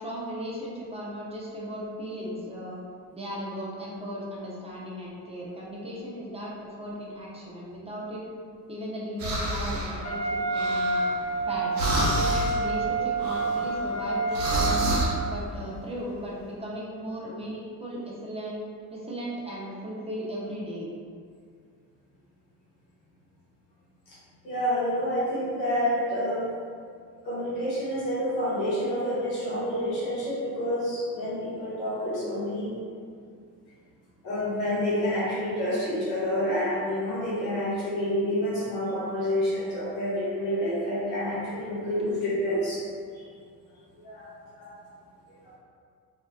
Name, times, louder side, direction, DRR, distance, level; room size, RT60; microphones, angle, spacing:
voice 1, 0.0-2.8 3.1-8.2 8.7-11.0 11.5-14.8 15.2-18.5 18.9-20.9, equal, 15° right, -5 dB, 0.6 m, -36 dB
sound 1, 9.2-10.0 10.5-11.5 11.7-12.6 13.2-15.1, equal, 90° right, 0.6 m, -29 dB
Wind instrument woodwind instrument, 10.0-15.3, right 3 dB, 30° left, 1.0 m, -28 dB
voice 2, 24.4-26.5 27.2-32.8 34.2-42.8 43.1-43.3 43.9-44.7, equal, 80° left, -8 dB, 1.0 m, -28 dB
2.6 x 2.1 x 2.3 m, 2.1 s
hypercardioid pair, 55°, 49 cm